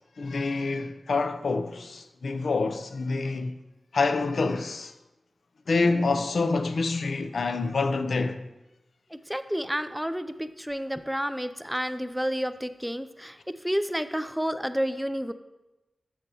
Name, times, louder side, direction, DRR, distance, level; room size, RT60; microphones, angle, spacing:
voice 1, 0.2-3.6 3.9-4.9 5.7-8.4, left 3 dB, 75° left, 0.4 m, -27 dB
voice 2, 9.1-15.3, equal, 5° right, 0.4 m, -30 dB
8.2 x 7.3 x 2.8 m
cardioid pair, 60°, 0 cm